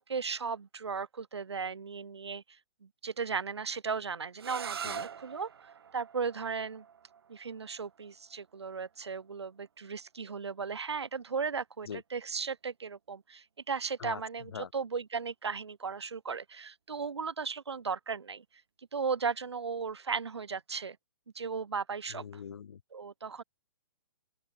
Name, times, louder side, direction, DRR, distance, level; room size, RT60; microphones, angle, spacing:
voice 1, 0.0-2.4 3.0-5.5 5.9-6.8 7.3-18.4 18.9-21.0 21.3-22.3 22.9-23.4, right 5 dB, 85° right, 1.2 m, -36 dB
sound 1, 4.4-10.1, right 7 dB, 65° right, 4.0 m, -45 dB
voice 2, 22.1-22.8, left 7 dB, 70° left, 2.2 m, -42 dB
open air
hypercardioid pair, 130°, 14 cm